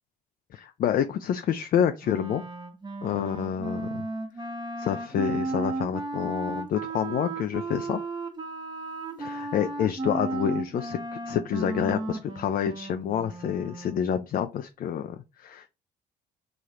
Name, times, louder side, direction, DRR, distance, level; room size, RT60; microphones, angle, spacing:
voice 1, 0.5-2.4 3.0-4.1 4.8-8.0 9.2-11.0 11.3-15.7, left 9 dB, 45° left, 0.4 m, -28 dB
Wind instrument woodwind instrument, 2.0-14.1, right 2 dB, 20° right, 1.1 m, -34 dB
3.1 x 2.3 x 4.3 m
hypercardioid pair, 55°, 21 cm